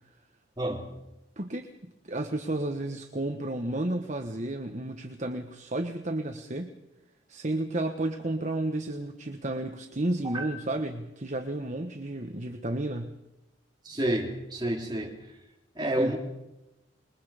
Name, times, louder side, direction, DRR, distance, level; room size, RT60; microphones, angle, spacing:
voice 1, 0.6-1.0 10.2-10.5 13.8-15.2 15.8-16.2, right 1 dB, 20° right, 3.6 m, -29 dB
voice 2, 1.4-1.7 2.0-6.7 7.3-13.1 16.0-16.1, right 1 dB, 40° right, 1.3 m, -32 dB
27.5 x 22.0 x 5.1 m
head